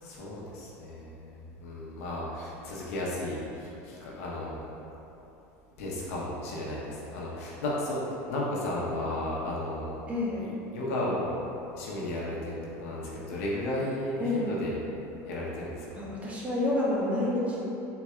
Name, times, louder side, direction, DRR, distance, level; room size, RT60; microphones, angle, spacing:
voice 1, 0.0-4.7 5.8-8.0 8.3-10.0 10.4-14.8 15.2-16.0, left 1 dB, 75° left, -5 dB, 0.9 m, -34 dB
voice 2, 10.1-10.4 14.2-14.5 15.9-17.6, left 2 dB, 20° right, -6 dB, 1.0 m, -28 dB
4.2 x 4.0 x 2.4 m, 2.9 s
supercardioid pair, 125°, 8 cm